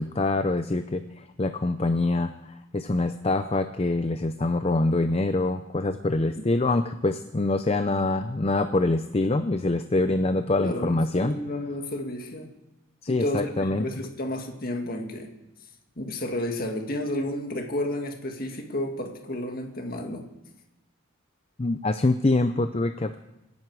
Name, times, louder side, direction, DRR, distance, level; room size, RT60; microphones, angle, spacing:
voice 1, 0.0-11.4 13.0-13.8 21.6-23.2, left 2 dB, 30° left, 9 dB, 0.5 m, -25 dB
voice 2, 10.6-12.5 13.1-15.3 16.0-20.2, left 1 dB, 45° left, 3 dB, 1.9 m, -31 dB
26.0 x 10.5 x 4.7 m, 0.95 s
head